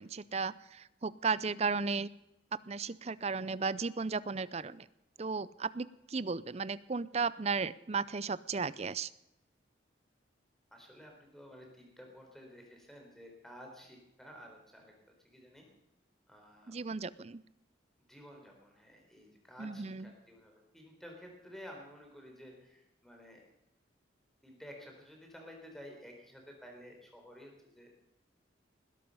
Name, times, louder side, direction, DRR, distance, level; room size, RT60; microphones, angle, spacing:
voice 1, 0.0-2.1 2.7-4.9 5.2-9.1 16.7-17.4 19.6-20.1, right 4 dB, 35° right, 18 dB, 0.5 m, -35 dB
voice 2, 10.7-14.9 15.2-15.7 16.3-16.8 18.1-23.5 24.4-27.9, equal, ahead, 1 dB, 3.9 m, -52 dB
20.0 x 12.0 x 5.5 m, 0.88 s
head